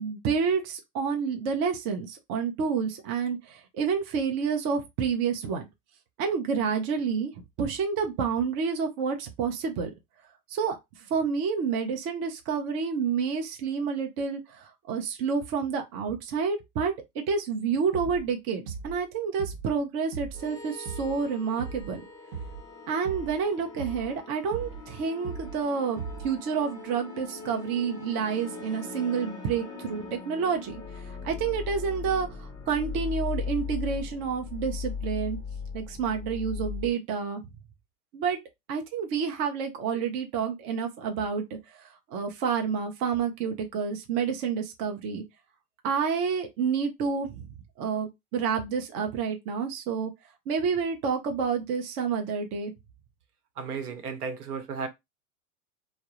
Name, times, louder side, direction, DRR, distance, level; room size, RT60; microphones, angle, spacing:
voice 1, 0.0-5.6 6.2-7.3 7.6-9.9 10.5-10.8 11.1-22.1 22.9-26.0 26.2-30.8 31.2-35.4 35.7-37.4 38.1-38.4 38.7-41.4 42.1-45.2 45.8-47.5 47.8-50.1 50.5-52.7, right 6 dB, 30° right, 0.5 m, -29 dB
sound 1, 17.9-18.3 18.7-19.0 19.4-19.8 20.1-20.5 20.9-21.2 21.6-22.0 22.3-22.7 23.0-23.4 23.8-24.2 24.5-24.9 25.2-25.6 26.0-26.4, right 5 dB, 50° right, 0.9 m, -38 dB
sound 2, 20.3-36.9, left 5 dB, 10° left, 1.1 m, -39 dB
voice 2, 53.6-54.9, right 5 dB, 75° right, 0.9 m, -34 dB
2.2 x 2.0 x 2.9 m
hypercardioid pair, 110°, 45 cm